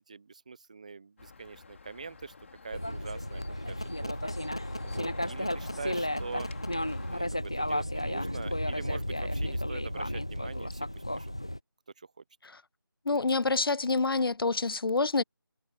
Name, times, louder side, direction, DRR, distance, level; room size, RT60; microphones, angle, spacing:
voice 1, 0.1-2.3 2.6-3.4 3.7-4.1 4.8-6.5 7.0-10.9 11.1-11.3, right 4 dB, 20° right, 0.8 m, -43 dB
sound 1, 1.2-7.2, left 4 dB, 35° left, 3.0 m, -48 dB
sound 2, 2.7-11.6, left 1 dB, 15° left, 0.4 m, -33 dB
voice 2, 13.1-15.2, left 3 dB, 75° left, 0.5 m, -27 dB
figure-of-eight pair, 170°, 12 cm